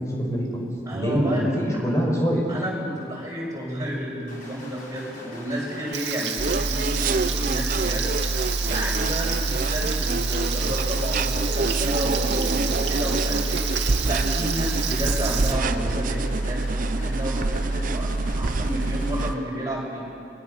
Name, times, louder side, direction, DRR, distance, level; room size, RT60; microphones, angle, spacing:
voice 1, 0.1-0.7 0.9-2.4, equal, 20° left, -2 dB, 5.7 m, -24 dB
voice 2, 0.9-1.4 2.5-8.2 8.7-13.6 14.0-18.1 18.4-20.0, equal, 20° right, -4 dB, 7.7 m, -31 dB
sound 1, 4.3-19.3, left 1 dB, 50° left, 4.9 m, -43 dB
Frying (food), 5.9-15.5, right 9 dB, 75° right, 2.2 m, -30 dB
sound 2, 6.4-19.4, right 2 dB, 45° right, 0.6 m, -25 dB
29.0 x 22.0 x 6.9 m, 2.4 s
head